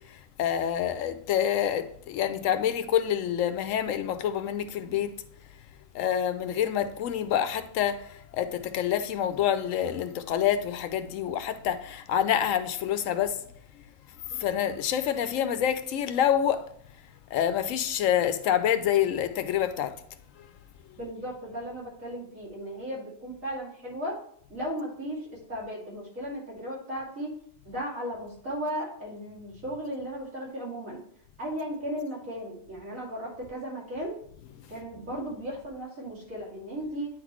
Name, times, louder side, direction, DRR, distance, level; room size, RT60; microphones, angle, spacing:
voice 1, 0.1-5.1 5.9-13.4 14.3-16.7 17.3-20.0, left 10 dB, 85° left, 1.0 m, -27 dB
voice 2, 21.0-24.2 24.5-27.3 27.6-31.0 31.4-34.2 34.7-37.1, equal, 85° right, 2.9 m, -36 dB
9.3 x 4.0 x 3.0 m
omnidirectional pair, 1.3 m